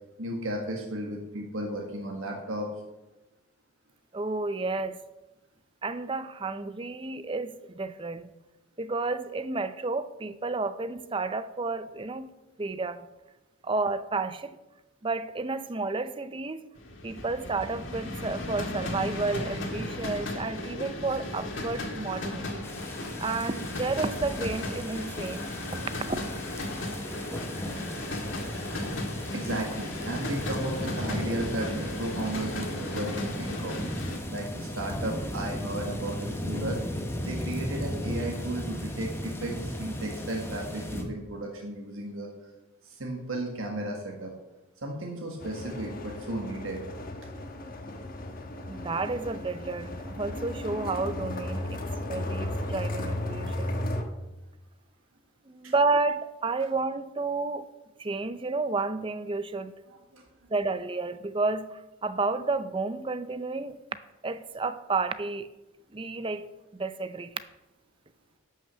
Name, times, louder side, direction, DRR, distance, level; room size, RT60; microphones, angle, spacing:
voice 1, 0.2-2.7 29.3-36.8 37.2-42.3 42.8-44.3 44.8-46.8 55.6-55.7 60.1-60.2, right 1 dB, 70° right, 1.6 m, -34 dB
voice 2, 4.1-5.0 5.8-8.3 8.8-12.3 12.6-13.1 13.6-14.6 15.0-16.7 17.0-22.7 23.2-26.2 48.7-51.8 52.1-53.8 55.5-57.7 58.0-59.7 60.5-63.8 64.2-65.5 65.9-66.5 66.8-67.3, right 3 dB, 25° right, 0.5 m, -31 dB
sound 1, 16.8-34.2, left 1 dB, 65° left, 2.0 m, -36 dB
sound 2, 22.6-41.0, equal, 10° left, 1.1 m, -36 dB
sound 3, 45.4-54.0, left 1 dB, 45° left, 1.2 m, -35 dB
11.5 x 6.0 x 6.9 m
head